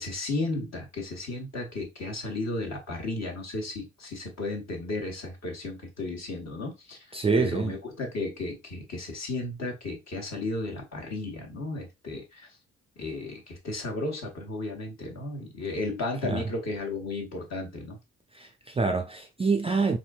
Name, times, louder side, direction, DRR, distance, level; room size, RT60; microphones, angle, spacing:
voice 1, 0.0-7.0 7.4-12.5 13.0-18.0, left 2 dB, 45° left, 1.3 m, -34 dB
voice 2, 7.1-7.7 16.2-16.5 18.3-20.0, right 4 dB, 15° right, 0.4 m, -26 dB
4.1 x 2.7 x 2.3 m
figure-of-eight pair, 45°, 37 cm